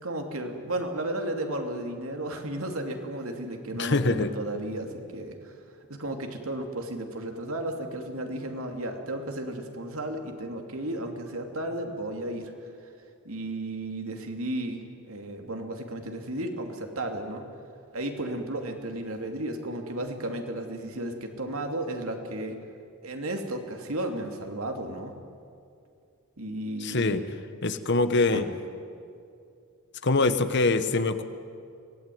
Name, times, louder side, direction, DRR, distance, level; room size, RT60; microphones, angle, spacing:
voice 1, 0.0-5.5 5.9-12.9 13.2-17.4 17.9-22.6 23.0-25.1 26.4-27.4 28.3-28.4, right 1 dB, 70° right, 4 dB, 2.7 m, -34 dB
voice 2, 3.8-4.3 26.8-27.2 27.6-28.4 30.0-31.2, left 3 dB, 50° left, 11 dB, 1.2 m, -24 dB
24.5 x 18.5 x 9.4 m, 2.4 s
head